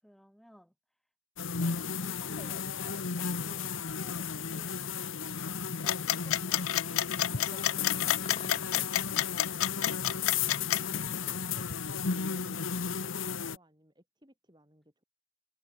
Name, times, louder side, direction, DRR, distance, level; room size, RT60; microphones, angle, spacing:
voice 1, 0.0-0.7 1.6-4.9, equal, ahead, 7.8 m, -58 dB
sound 1, 1.4-13.6, left 6 dB, 70° left, 1.1 m, -34 dB
sound 2, 5.9-10.8, left 13 dB, 90° left, 0.4 m, -29 dB
sound 3, 6.7-7.7 8.0-9.0, left 3 dB, 30° left, 2.5 m, -49 dB
voice 2, 11.0-15.0, equal, 20° right, 5.6 m, -60 dB
head